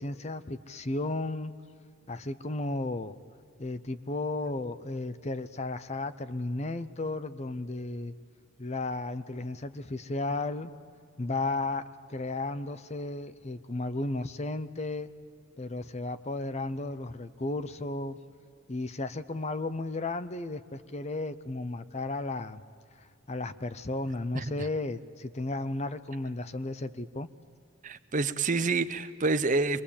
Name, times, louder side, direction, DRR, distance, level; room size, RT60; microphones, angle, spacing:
voice 1, 0.0-1.5 2.1-3.1 3.6-8.1 8.6-10.7 11.2-11.8 12.1-15.1 15.6-18.2 18.7-22.6 23.0-27.3, left 2 dB, 30° left, 13 dB, 0.7 m, -34 dB
voice 2, 24.3-24.7 27.8-29.8, right 3 dB, 40° right, 12 dB, 0.7 m, -28 dB
25.0 x 21.5 x 8.6 m, 2.3 s
head